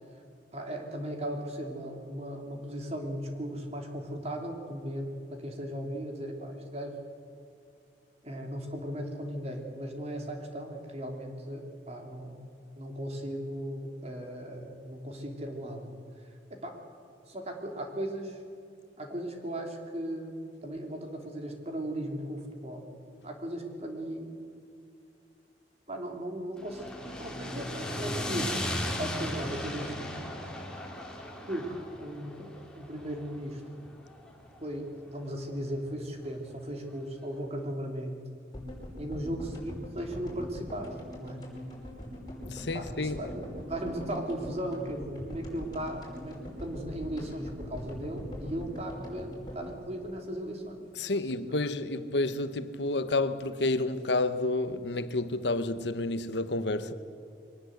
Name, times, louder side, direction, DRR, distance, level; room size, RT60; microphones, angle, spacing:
voice 1, 0.5-7.0 8.2-12.4 12.7-15.8 16.5-16.8 17.3-18.4 19.0-22.9 23.2-24.3 25.9-28.6 29.0-30.2 31.5-32.5 32.7-33.6 34.6-38.2 39.0-41.4 42.7-50.8 51.5-51.6, right 1 dB, 35° right, 3.1 m, -37 dB
sound 1, 26.6-34.8, left 1 dB, 5° left, 2.8 m, -36 dB
sound 2, 38.5-50.8 51.0-51.1 51.3-51.4, left 1 dB, 25° left, 5.3 m, -42 dB
voice 2, 42.4-43.3 50.9-56.9, left 2 dB, 80° left, 1.1 m, -30 dB
23.0 x 19.0 x 8.0 m
head